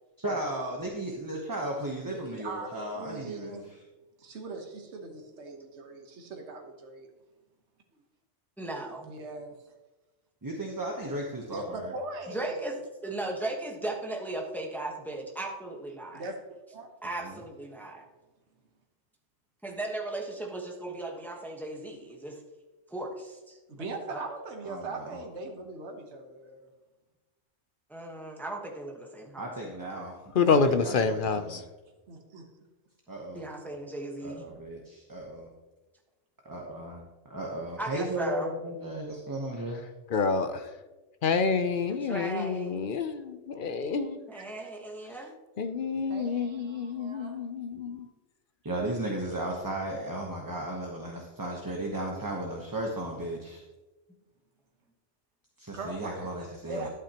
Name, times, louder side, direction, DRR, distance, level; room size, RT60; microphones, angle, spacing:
voice 1, 0.2-3.8 10.4-11.9 17.2-17.4 24.6-25.2 29.4-30.2 30.5-31.6 33.1-33.5 34.2-35.5 36.4-39.8 48.6-53.6 55.6-56.9, right 1 dB, 20° right, 0.9 m, -35 dB
voice 2, 2.1-3.7 4.2-7.1 9.1-9.6 11.5-12.6 16.1-16.4 16.7-16.9 23.7-26.7 32.1-32.4 44.3-44.7 46.1-47.4 55.7-56.3 56.7-56.9, right 3 dB, 65° right, 1.4 m, -40 dB
voice 3, 8.6-9.1 12.3-16.2 17.0-18.0 19.6-22.4 22.9-24.2 27.9-29.5 30.0-30.1 33.3-34.6 37.8-38.5 41.9-42.8 44.3-45.3, right 2 dB, ahead, 1.1 m, -37 dB
voice 4, 30.3-31.6 40.1-40.7 41.2-44.2 45.6-48.1, left 5 dB, 55° left, 0.7 m, -28 dB
12.0 x 8.6 x 2.9 m
omnidirectional pair, 1.3 m